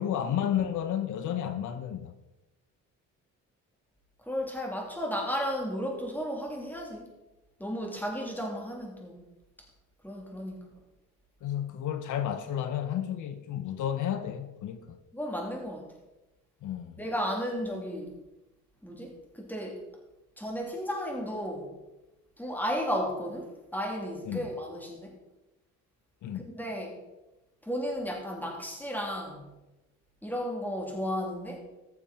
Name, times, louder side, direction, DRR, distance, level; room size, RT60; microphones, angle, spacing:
voice 1, 0.0-2.1 11.4-15.0 16.6-17.0 24.3-24.4 26.2-26.4, left 10 dB, 80° left, 1.0 m, -32 dB
voice 2, 4.2-7.1 7.6-9.3 10.0-10.6 15.1-15.9 17.0-18.2 18.8-19.8 20.4-21.8 22.4-25.2 26.3-27.0 27.6-29.5 30.2-31.6, equal, 5° left, 3.2 m, -34 dB
15.0 x 6.9 x 4.4 m
cardioid pair, 90°, 30 cm